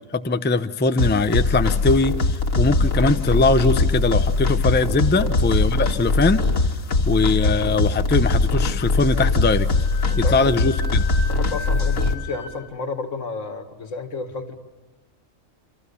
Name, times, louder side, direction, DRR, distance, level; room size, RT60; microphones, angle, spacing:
voice 1, 0.1-6.4 7.1-9.7 10.2-11.0, left 3 dB, 10° left, 10 dB, 0.5 m, -21 dB
sound 1, 1.0-12.1, left 3 dB, 90° left, 1.9 m, -21 dB
Wind instrument woodwind instrument, 9.7-12.5, left 3 dB, 75° right, 7.8 m, -37 dB
voice 2, 10.1-10.6 11.3-14.6, left 4 dB, 75° left, 7 dB, 2.2 m, -31 dB
28.0 x 25.5 x 7.0 m, 1.2 s
omnidirectional pair, 1.4 m